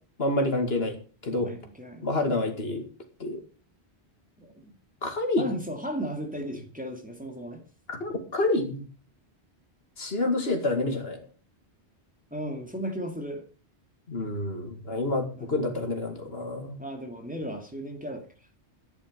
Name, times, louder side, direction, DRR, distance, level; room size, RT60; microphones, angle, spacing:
voice 1, 0.2-0.9 1.2-1.5 2.0-2.8 3.2-3.4 5.0-5.5 7.9-8.8 10.0-11.3 14.1-16.8, left 2 dB, 65° left, 5 dB, 2.5 m, -28 dB
voice 2, 1.3-2.1 4.4-4.7 5.4-7.6 12.3-13.4 15.4-15.6 16.8-18.2, right 1 dB, 5° right, 3 dB, 2.5 m, -35 dB
13.0 x 10.5 x 5.4 m, 0.39 s
omnidirectional pair, 1.1 m